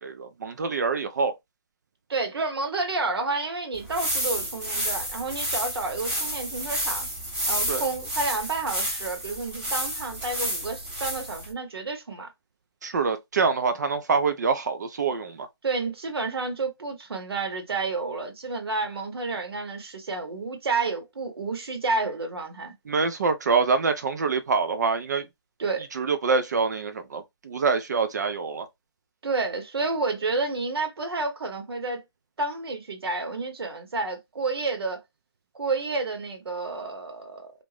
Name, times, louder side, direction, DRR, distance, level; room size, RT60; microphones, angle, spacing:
voice 1, 0.0-1.3 7.7-7.8 12.8-15.5 22.9-25.3 25.9-28.7, right 4 dB, 40° right, 0.4 m, -25 dB
voice 2, 2.1-7.1 7.5-12.3 15.6-22.7 25.6-25.9 29.2-32.0 32.4-35.0 35.5-37.5, right 3 dB, 65° right, 1.0 m, -30 dB
sound 1, 3.7-11.5, equal, 5° right, 0.8 m, -30 dB
2.6 x 2.1 x 3.1 m
hypercardioid pair, 155°, 14 cm